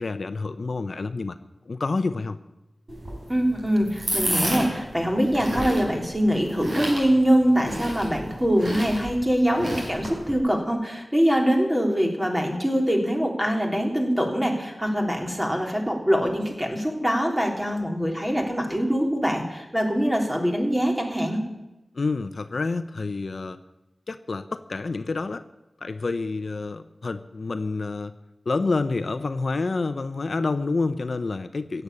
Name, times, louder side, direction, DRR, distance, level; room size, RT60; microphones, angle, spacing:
voice 1, 0.0-1.4 1.7-2.4 21.9-23.6 24.1-25.4 25.8-28.1 28.5-31.8, left 3 dB, 65° left, 11 dB, 0.6 m, -28 dB
sound 1, 2.9-10.4, right 1 dB, 55° right, 5.2 m, -31 dB
voice 2, 3.3-21.4, equal, 10° right, 1 dB, 3.1 m, -23 dB
15.5 x 8.0 x 8.5 m, 0.96 s
wide cardioid pair, 85°, 0 cm